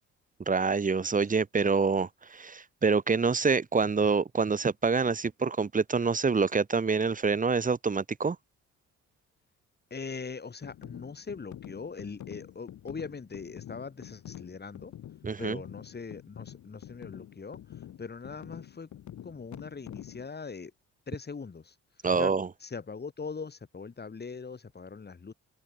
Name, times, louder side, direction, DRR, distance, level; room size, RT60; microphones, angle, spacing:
voice 1, 0.5-8.4 15.2-15.6 22.0-22.5, right 5 dB, 25° right, 1.4 m, -26 dB
voice 2, 9.9-14.9 15.4-18.9 19.2-20.7 21.1-21.8 22.2-22.3 22.6-25.3, left 5 dB, 35° left, 7.6 m, -41 dB
sound 1, 10.6-20.3, left 11 dB, 70° left, 4.2 m, -47 dB
cardioid pair, 90°, 30 cm